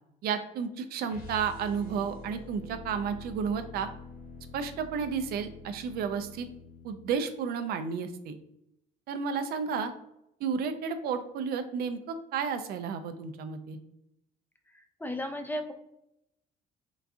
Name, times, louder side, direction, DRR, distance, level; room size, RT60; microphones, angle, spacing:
voice 1, 0.2-3.9 4.5-6.5 6.8-8.4 9.1-9.9 10.4-13.8, right 6 dB, 65° right, 8 dB, 0.4 m, -32 dB
sound 1, 1.1-7.2, left 4 dB, 65° left, 0.9 m, -46 dB
voice 2, 14.7-15.7, left 1 dB, 10° left, 6 dB, 0.3 m, -35 dB
3.8 x 2.3 x 2.5 m, 0.82 s
cardioid pair, 110°, 17 cm